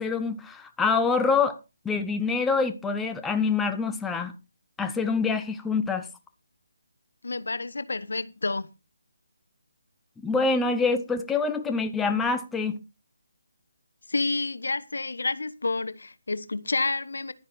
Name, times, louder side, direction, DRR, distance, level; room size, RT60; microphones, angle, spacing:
voice 1, 0.0-1.6 1.8-4.3 4.8-6.1 10.2-12.8, left 4 dB, 5° left, 0.9 m, -25 dB
voice 2, 7.2-8.7 14.1-17.3, left 3 dB, 75° left, 1.1 m, -29 dB
12.0 x 9.9 x 4.2 m
figure-of-eight pair, 155°, 0 cm